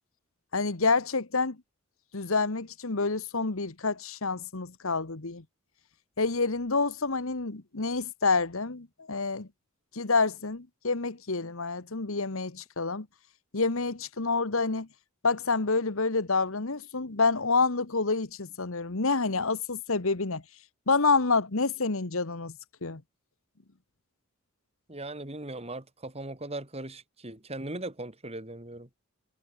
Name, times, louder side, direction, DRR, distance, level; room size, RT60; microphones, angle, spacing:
voice 1, 0.5-1.6 2.1-5.4 6.2-9.5 9.9-13.1 13.5-14.9 15.2-20.4 20.9-23.0, left 4 dB, 65° left, 1.4 m, -28 dB
voice 2, 24.9-28.9, right 2 dB, 30° right, 2.9 m, -39 dB
head